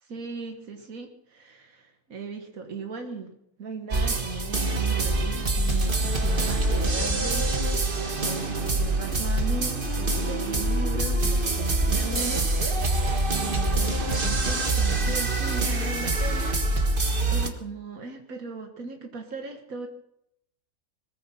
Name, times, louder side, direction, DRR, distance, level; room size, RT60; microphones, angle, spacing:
voice 1, 0.1-14.0 14.2-16.6 17.3-19.9, right 4 dB, 85° right, 3 dB, 1.9 m, -38 dB
sound 1, 3.9-17.5, right 2 dB, 40° right, 1.7 m, -25 dB
21.0 x 14.5 x 4.3 m, 0.77 s
omnidirectional pair, 1.4 m